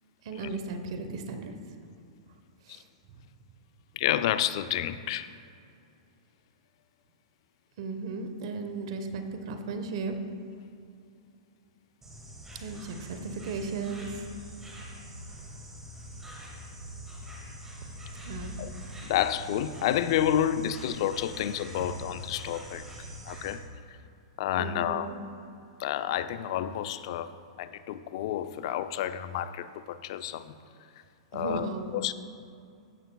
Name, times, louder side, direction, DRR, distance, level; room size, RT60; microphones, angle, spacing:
voice 1, 0.2-1.5 2.6-2.9 7.8-10.1 12.6-14.3 18.2-18.6 24.6-25.2 31.3-31.9, right 4 dB, 60° right, 6 dB, 0.9 m, -36 dB
voice 2, 4.0-5.3 18.6-18.7 19.0-22.9 23.3-23.6 24.4-25.1 25.8-27.3 27.6-30.6 31.3-31.7 31.9-32.1, left 11 dB, 55° left, 13 dB, 0.4 m, -29 dB
Insect, 12.0-23.5, equal, 10° right, 1.9 m, -44 dB
15.5 x 6.6 x 2.3 m, 2.5 s
hypercardioid pair, 140°, 3 cm